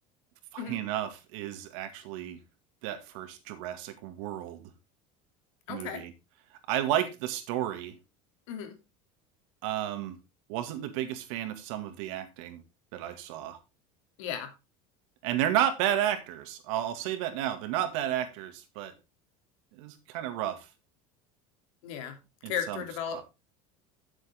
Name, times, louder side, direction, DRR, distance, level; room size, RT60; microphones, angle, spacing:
voice 1, 0.5-2.4 2.8-4.7 5.7-6.1 6.7-8.0 9.6-10.2 10.5-12.6 12.9-13.6 15.2-18.9 19.7-20.7 22.4-22.8 23.1-23.2, right 11 dB, 80° right, 8 dB, 2.1 m, -32 dB
voice 2, 5.7-6.0 8.5-8.8 14.2-14.5 21.8-22.2 22.4-23.2, left 8 dB, 85° left, 5 dB, 2.9 m, -35 dB
10.5 x 7.6 x 3.6 m, 0.26 s
cardioid pair, 140°, 17 cm